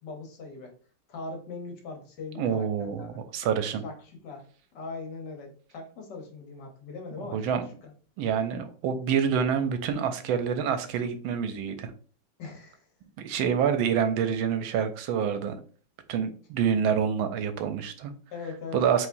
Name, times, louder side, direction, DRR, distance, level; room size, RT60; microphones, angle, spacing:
voice 1, 0.0-0.7 1.1-3.2 3.8-4.4 4.7-7.9 12.4-12.8 18.3-18.8, left 3 dB, 60° left, 2 dB, 1.5 m, -40 dB
voice 2, 2.4-3.8 7.3-7.6 8.2-11.9 13.2-15.6 16.1-18.1 18.7-19.1, right 7 dB, 85° right, 9 dB, 1.4 m, -27 dB
4.8 x 3.4 x 2.6 m, 0.42 s
omnidirectional pair, 2.2 m